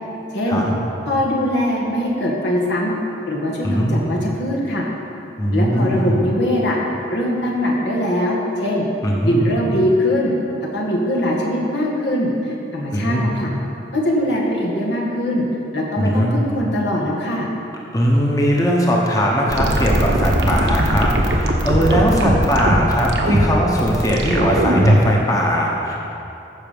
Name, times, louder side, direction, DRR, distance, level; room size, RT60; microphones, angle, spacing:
voice 1, 0.5-0.8 3.6-4.0 5.4-6.2 9.0-9.5 12.9-13.3 16.0-16.4 17.9-26.0, equal, 20° left, -2 dB, 1.1 m, -19 dB
voice 2, 1.1-2.9 3.3-4.9 5.5-6.8 7.1-8.9 9.2-10.3 10.6-13.5 13.9-15.5 15.7-17.5, equal, 75° left, -3 dB, 1.9 m, -21 dB
sound 1, 19.5-25.1, right 1 dB, 80° right, 1.2 m, -18 dB
15.0 x 6.1 x 5.3 m, 2.8 s
head